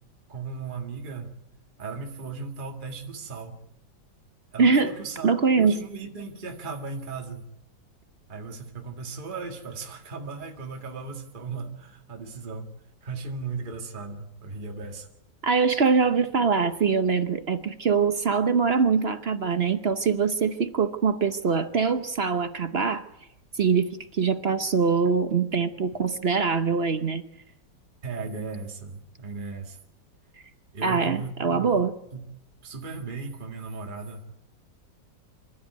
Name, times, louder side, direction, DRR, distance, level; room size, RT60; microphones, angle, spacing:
voice 1, 0.3-1.3 1.8-3.6 4.5-7.5 8.3-12.7 13.0-15.1 28.0-29.8 30.7-31.8 32.1-32.3 32.6-34.4, right 4 dB, 25° right, 3 dB, 1.9 m, -36 dB
voice 2, 4.6-4.9 5.2-5.8 15.4-23.0 23.6-27.2 30.8-31.9, right 5 dB, 45° right, 9 dB, 0.9 m, -23 dB
26.0 x 13.0 x 9.4 m, 0.89 s
omnidirectional pair, 2.1 m